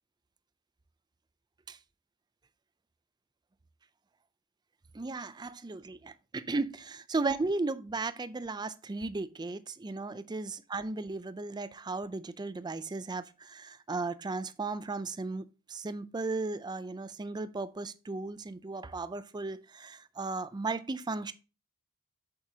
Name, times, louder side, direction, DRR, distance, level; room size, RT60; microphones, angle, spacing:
voice 1, 4.9-21.3, right 3 dB, 20° right, 0.4 m, -35 dB
7.9 x 7.3 x 2.8 m
head